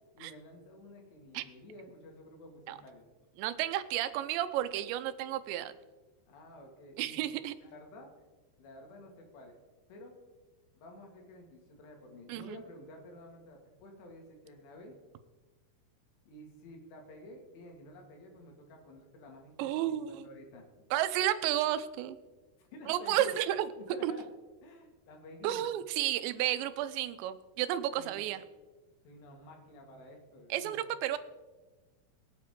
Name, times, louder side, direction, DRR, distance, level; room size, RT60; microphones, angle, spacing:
voice 1, 0.2-3.1 6.3-7.3 7.6-8.1 8.6-9.6 9.9-10.1 10.8-14.9 16.3-19.5 19.9-20.7 22.6-23.4 23.8-24.2 24.6-25.7 28.0-28.2 29.0-30.8, left 1 dB, 75° left, 2 dB, 4.2 m, -51 dB
voice 2, 3.4-5.7 7.0-7.5 12.3-12.6 19.6-20.2 20.9-22.2 22.9-23.7 24.0-24.1 25.4-28.4 30.5-31.2, right 12 dB, 85° right, 12 dB, 3.0 m, -32 dB
23.0 x 8.6 x 3.7 m, 1.2 s
omnidirectional pair, 5.0 m